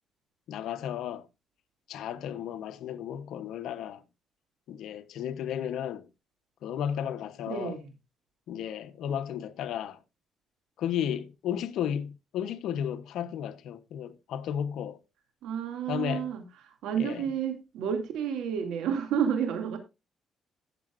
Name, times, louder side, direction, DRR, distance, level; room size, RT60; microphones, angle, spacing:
voice 1, 0.5-1.3 1.9-4.0 4.7-6.1 6.6-7.8 8.5-10.0 10.8-15.0 15.9-16.3 16.9-17.2, left 9 dB, 80° left, 0.9 m, -33 dB
voice 2, 7.5-7.9 15.4-19.8, right 8 dB, 85° right, 2.4 m, -30 dB
16.5 x 7.0 x 2.5 m
cardioid pair, 90°, 0 cm